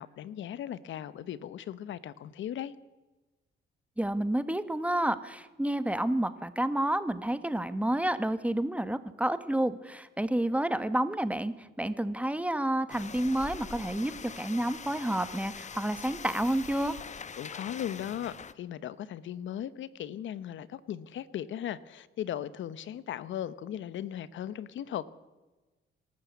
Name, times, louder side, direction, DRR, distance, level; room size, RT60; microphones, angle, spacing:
voice 1, 0.0-2.7 17.4-25.2, left 10 dB, 75° left, 17 dB, 1.0 m, -37 dB
voice 2, 4.0-16.9, right 1 dB, 5° right, 12 dB, 1.4 m, -30 dB
sound 1, 12.9-18.5, left 6 dB, 35° left, 1.0 m, -43 dB
25.0 x 13.0 x 8.3 m, 1.2 s
cardioid pair, 90°, 20 cm